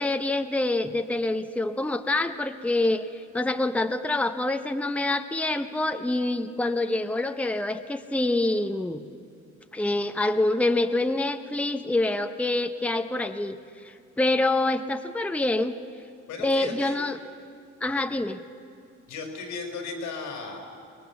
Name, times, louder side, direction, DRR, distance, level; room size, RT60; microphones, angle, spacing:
voice 1, 0.0-9.0 9.7-13.6 13.8-15.7 16.4-17.2 17.8-18.4, left 2 dB, 5° left, 7 dB, 0.8 m, -26 dB
voice 2, 16.3-16.9 19.1-20.6, left 4 dB, 90° left, 3 dB, 4.5 m, -35 dB
24.0 x 20.0 x 7.1 m, 2.6 s
cardioid pair, 90°, 30 cm